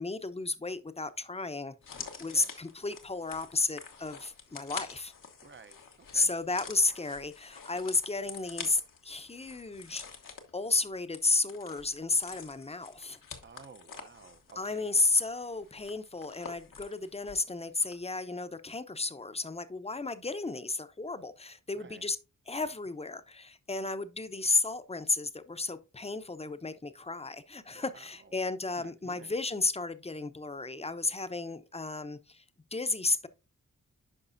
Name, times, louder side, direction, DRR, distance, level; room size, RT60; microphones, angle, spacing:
voice 1, 0.0-1.7 2.2-5.1 6.1-10.0 10.5-13.2 14.6-22.2 22.5-32.4 32.7-33.3, left 3 dB, 20° left, 0.8 m, -32 dB
sound 1, 1.8-17.5 17.8-17.9, left 6 dB, 80° left, 1.3 m, -47 dB
voice 2, 2.3-2.6 5.4-5.8 6.1-6.3 13.4-14.9 21.7-22.1 27.7-28.0 28.7-29.3, right 5 dB, 35° right, 0.7 m, -53 dB
10.0 x 5.4 x 2.6 m
cardioid pair, 60°, 32 cm